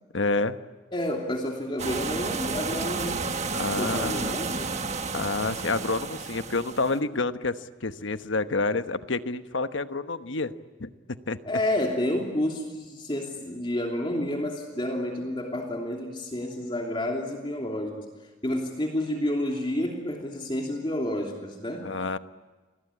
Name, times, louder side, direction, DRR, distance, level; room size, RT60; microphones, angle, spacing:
voice 1, 0.1-0.6 3.5-4.3 5.1-10.5 10.8-11.4 21.8-22.2, left 3 dB, 80° left, 10 dB, 1.1 m, -28 dB
voice 2, 0.9-3.4 3.7-4.8 11.4-18.1 18.4-21.9, left 1 dB, 25° left, 1 dB, 3.0 m, -30 dB
sound 1, 1.8-7.0, right 4 dB, 35° right, 1.4 m, -31 dB
29.0 x 22.0 x 8.7 m, 1.3 s
head